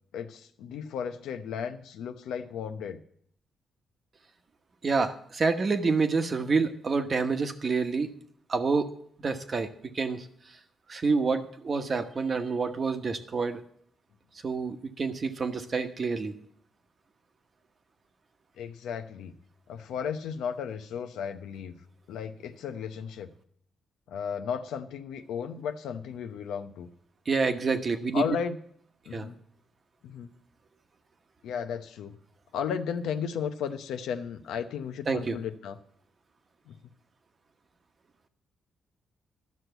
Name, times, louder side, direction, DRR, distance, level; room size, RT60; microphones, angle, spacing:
voice 1, 0.1-3.0 18.6-19.3 19.7-21.8 22.1-23.3 24.1-26.9 28.1-28.6 29.1-29.3 30.0-30.3 31.4-32.2 32.5-35.8 36.7-36.8, left 7 dB, 90° left, 8 dB, 0.8 m, -34 dB
voice 2, 4.8-8.1 8.5-8.9 9.2-9.7 9.9-10.3 10.9-13.6 14.4-16.3 27.3-28.2 29.1-29.3 35.1-35.4, right 4 dB, 40° right, 8 dB, 1.1 m, -27 dB
12.0 x 6.4 x 8.0 m, 0.65 s
cardioid pair, 100°, 0 cm